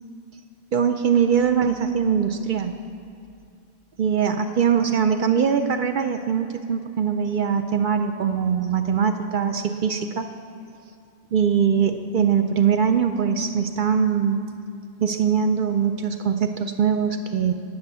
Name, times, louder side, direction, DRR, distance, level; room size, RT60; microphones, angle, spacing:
voice 1, 0.7-2.8 4.0-10.3 11.3-14.4 15.0-17.5, right 7 dB, 55° right, 6 dB, 0.6 m, -22 dB
10.5 x 8.2 x 6.7 m, 2.4 s
omnidirectional pair, 1.1 m